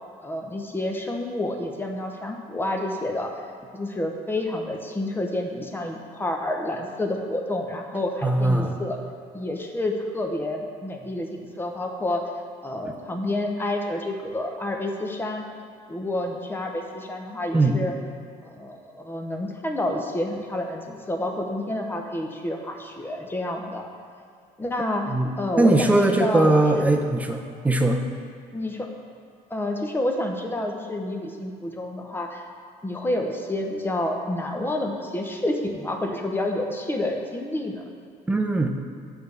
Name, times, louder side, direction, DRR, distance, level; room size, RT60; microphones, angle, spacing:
voice 1, 0.2-3.4 3.7-9.0 9.3-12.2 12.6-15.5 15.9-17.9 18.5-23.9 24.6-26.9 27.7-27.9 28.5-28.9 29.5-32.4 32.8-37.8, left 1 dB, 15° left, 2 dB, 0.8 m, -29 dB
voice 2, 8.2-8.8 17.5-17.8 25.1-25.3 25.6-28.0 38.3-38.7, right 2 dB, 10° right, 4 dB, 0.6 m, -20 dB
8.5 x 3.5 x 6.7 m, 2.4 s
cardioid pair, 120°, 16 cm